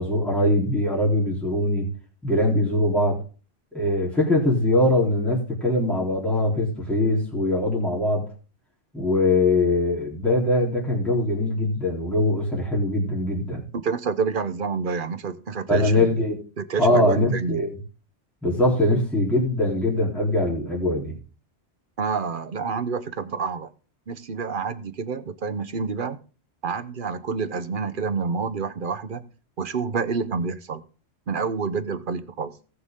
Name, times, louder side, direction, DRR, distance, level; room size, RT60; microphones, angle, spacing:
voice 1, 0.0-1.9 2.2-3.2 3.7-8.2 8.9-13.6 15.7-16.4 16.8-17.7 18.4-21.2, left 1 dB, ahead, -5 dB, 3.7 m, -22 dB
voice 2, 13.8-16.2 16.6-17.7 22.0-23.7 24.1-26.2 26.6-29.3 29.6-30.8 31.3-32.5, right 5 dB, 50° right, 12 dB, 1.0 m, -28 dB
18.5 x 6.7 x 3.7 m, 0.38 s
omnidirectional pair, 1.2 m